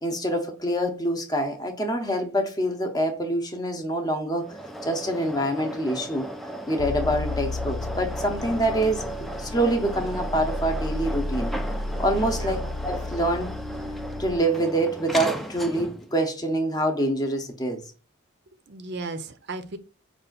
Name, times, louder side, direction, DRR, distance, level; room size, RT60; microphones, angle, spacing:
voice 1, 0.0-4.5 4.8-6.3 6.7-9.0 9.4-11.5 12.0-13.5 14.2-17.8, right 1 dB, 20° left, 0.7 m, -26 dB
sound 1, 4.4-16.1, right 1 dB, ahead, 0.3 m, -36 dB
sound 2, 6.8-14.4, left 2 dB, 80° left, 0.5 m, -32 dB
voice 2, 12.3-12.6 15.1-15.2 18.7-19.8, right 3 dB, 50° right, 0.5 m, -36 dB
5.3 x 2.4 x 3.8 m
head